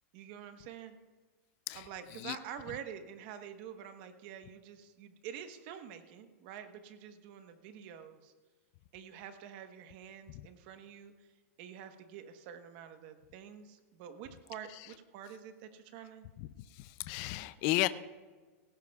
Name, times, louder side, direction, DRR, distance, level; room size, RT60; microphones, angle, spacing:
voice 1, 0.1-0.9 1.7-8.3 8.9-11.1 11.6-16.3, right 9 dB, 40° right, 8 dB, 1.1 m, -47 dB
voice 2, 16.7-17.9, left 17 dB, 35° left, 13 dB, 0.4 m, -33 dB
18.0 x 16.5 x 2.3 m, 1.4 s
supercardioid pair, 160°, 8 cm